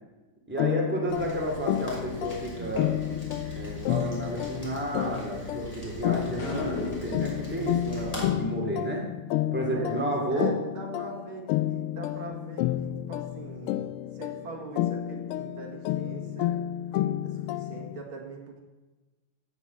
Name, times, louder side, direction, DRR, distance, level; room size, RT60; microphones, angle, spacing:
voice 1, 0.5-2.9 3.6-9.1 9.5-10.5, right 1 dB, 5° right, -1 dB, 2.5 m, -31 dB
sound 1, 0.6-18.0, left 13 dB, 85° left, 1.5 m, -31 dB
Rain, 1.1-8.2, right 1 dB, 15° left, 4.0 m, -42 dB
voice 2, 2.6-3.2 9.7-13.8 14.1-16.6 16.9-18.6, right 3 dB, 70° right, 0 dB, 2.9 m, -42 dB
sound 2, 6.4-7.4, left 4 dB, 65° left, 2.4 m, -36 dB
16.5 x 6.3 x 7.8 m, 1.2 s
omnidirectional pair, 2.4 m